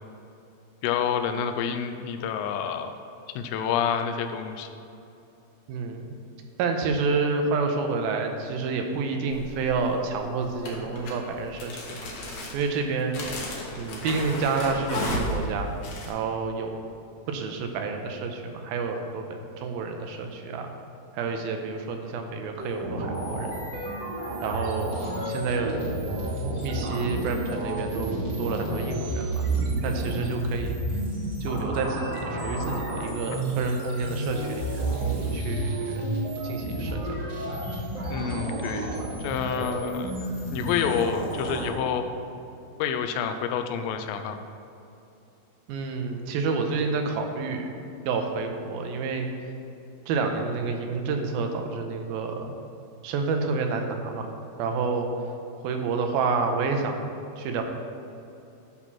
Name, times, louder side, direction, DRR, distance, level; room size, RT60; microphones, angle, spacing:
voice 1, 0.8-2.9 3.4-4.7 38.1-40.1 40.5-42.1 42.8-44.4, left 7 dB, 80° left, 7 dB, 2.2 m, -28 dB
voice 2, 5.7-6.2 6.6-12.1 12.5-13.2 13.8-15.7 16.1-16.7 17.3-19.2 19.6-20.7 21.1-23.5 24.4-26.0 26.6-29.5 29.8-30.8 31.4-34.9 35.3-37.2 45.7-47.7 48.1-49.3 50.1-52.5 53.0-54.3 54.6-55.1 55.6-57.0 57.4-57.6, right 4 dB, 80° right, 4 dB, 2.5 m, -29 dB
sound 1, 9.3-9.8 10.6-16.1, left 1 dB, 60° left, 2.2 m, -33 dB
sound 2, 22.6-41.7, right 1 dB, 35° right, 2.1 m, -31 dB
11.0 x 4.4 x 5.9 m, 2.7 s
omnidirectional pair, 4.5 m